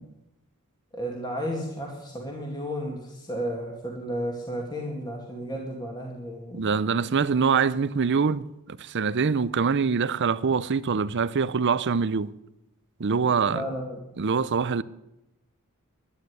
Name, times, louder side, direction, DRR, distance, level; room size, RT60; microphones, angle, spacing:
voice 1, 0.9-6.6 13.5-14.0, equal, 20° left, 2.2 m, -33 dB
voice 2, 6.5-12.3 13.0-13.6 14.2-14.8, right 5 dB, 55° right, 0.6 m, -24 dB
12.0 x 9.9 x 9.6 m
head